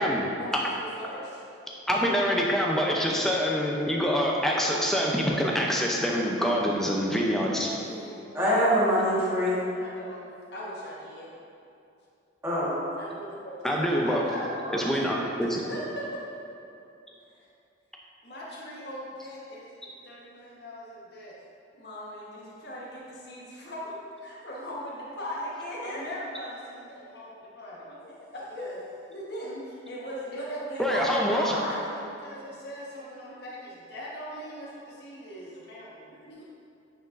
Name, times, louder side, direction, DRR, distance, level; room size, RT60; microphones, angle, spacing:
voice 1, 0.4-1.4 7.8-8.4 9.7-10.2 10.5-11.3 13.0-15.2 15.6-15.8 17.3-17.5 18.2-21.3 21.7-28.0 28.3-28.8 29.1-36.4, equal, 60° left, -6 dB, 1.3 m, -39 dB
voice 2, 1.9-7.7 13.6-14.2 14.7-15.2 15.5-15.6 30.8-31.6, equal, ahead, -2 dB, 0.5 m, -25 dB
voice 3, 8.3-9.6 12.4-12.7 28.5-28.7, equal, 15° right, -10 dB, 1.5 m, -24 dB
9.1 x 4.5 x 2.6 m, 2.7 s
head